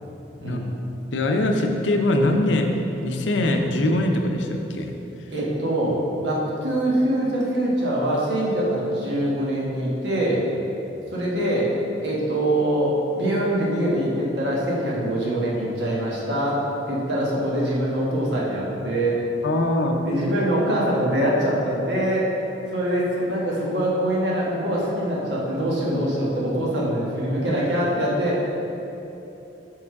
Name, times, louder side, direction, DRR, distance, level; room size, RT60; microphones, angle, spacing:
voice 1, 0.4-0.7 5.3-10.4 11.1-11.7 12.0-19.4 20.0-22.3 22.7-28.4, right 1 dB, 70° right, -5 dB, 1.4 m, -24 dB
voice 2, 1.1-2.7 3.0-4.9 19.4-20.0, left 1 dB, 80° left, 4 dB, 0.6 m, -22 dB
5.5 x 4.7 x 4.7 m, 3.0 s
head